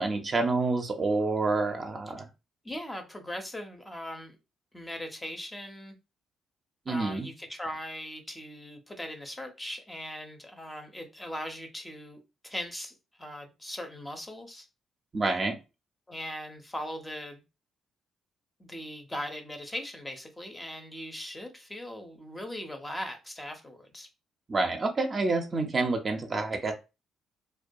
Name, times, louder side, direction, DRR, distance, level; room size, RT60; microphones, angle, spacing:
voice 1, 0.0-2.3 6.9-7.3 15.1-15.6 24.5-26.7, right 3 dB, 35° right, 0.5 m, -28 dB
voice 2, 2.6-4.4 4.7-6.0 6.9-14.7 16.1-17.4 18.6-24.1, equal, 15° left, 0.5 m, -39 dB
2.2 x 2.2 x 2.6 m
cardioid pair, 90°, 0 cm